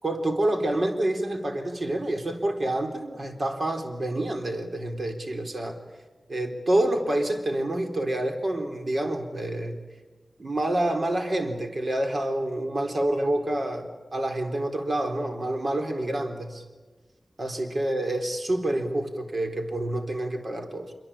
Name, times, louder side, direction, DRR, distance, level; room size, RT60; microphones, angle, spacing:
voice 1, 0.0-5.8 6.3-9.8 10.4-16.6 17.4-20.9, right 1 dB, 60° right, 4 dB, 4.1 m, -28 dB
26.5 x 24.0 x 8.9 m, 1.3 s
wide cardioid pair, 75°, 0 cm